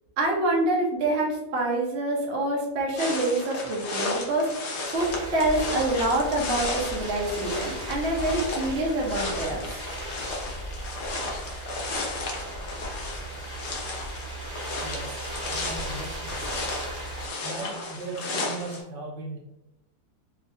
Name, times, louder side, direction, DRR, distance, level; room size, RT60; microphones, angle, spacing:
voice 1, 0.2-4.5 4.9-9.7, right 2 dB, 50° right, -2 dB, 0.8 m, -26 dB
sound 1, 3.0-18.8, left 2 dB, 75° left, 0.6 m, -34 dB
sound 2, 4.9-17.3, right 1 dB, 30° right, 1.6 m, -37 dB
voice 2, 14.8-15.2 15.5-16.4 17.4-19.4, right 2 dB, 75° right, -1 dB, 1.2 m, -37 dB
3.4 x 2.9 x 2.5 m, 0.92 s
omnidirectional pair, 2.1 m